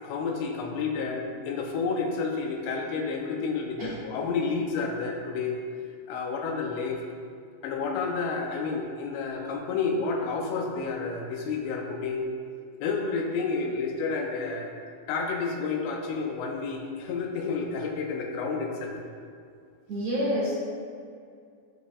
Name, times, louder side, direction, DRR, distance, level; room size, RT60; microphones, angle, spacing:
voice 1, 0.0-5.6 6.1-7.0 7.6-12.3 12.8-14.7 15.1-18.9, left 4 dB, 85° left, 1 dB, 2.9 m, -30 dB
voice 2, 19.9-20.6, equal, 55° right, -8 dB, 2.3 m, -27 dB
11.0 x 6.1 x 2.4 m, 2.3 s
omnidirectional pair, 4.8 m